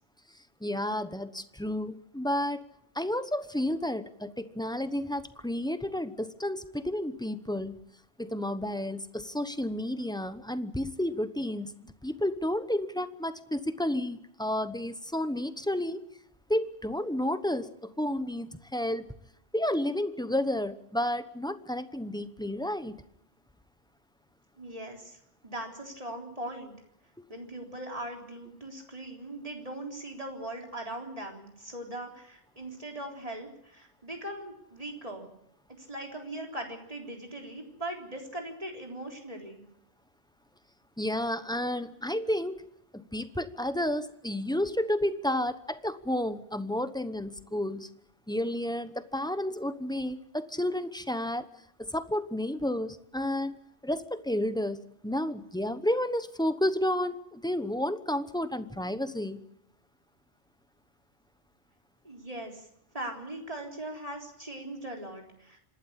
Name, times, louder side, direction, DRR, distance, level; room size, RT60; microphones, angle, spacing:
voice 1, 0.6-2.6 2.9-7.7 8.2-11.7 12.0-16.0 16.5-19.1 19.5-23.0 41.0-42.6 42.9-47.9 48.3-51.5 51.8-53.6 53.8-54.8 55.0-59.4, left 1 dB, 5° left, 11 dB, 0.9 m, -31 dB
voice 2, 24.6-25.2 25.4-26.7 27.3-35.3 35.8-39.6 62.0-62.7 62.9-65.6, right 1 dB, 30° right, 1 dB, 3.9 m, -40 dB
26.5 x 12.5 x 9.9 m, 0.80 s
omnidirectional pair, 1.2 m